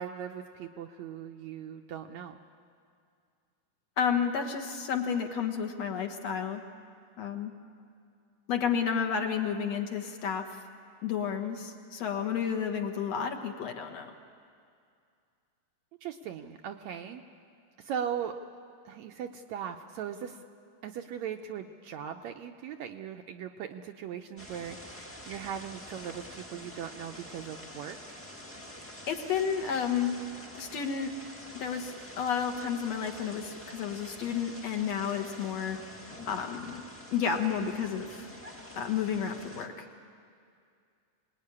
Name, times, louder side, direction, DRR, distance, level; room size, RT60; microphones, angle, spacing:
voice 1, 0.0-2.4 9.1-9.3 16.0-17.2 17.8-18.4 18.9-20.4 20.8-28.2, right 8 dB, 75° right, 5 dB, 1.8 m, -39 dB
voice 2, 4.0-6.6 7.2-7.5 8.5-10.6 11.0-14.1 28.8-30.2 30.5-31.1 31.5-35.8 36.3-36.8 37.1-38.3 38.7-39.9, left 7 dB, 60° left, 4 dB, 2.2 m, -31 dB
sound 1, 24.4-39.7, left 1 dB, 15° left, 0.4 m, -47 dB
25.5 x 19.5 x 9.7 m, 2.3 s
omnidirectional pair, 3.8 m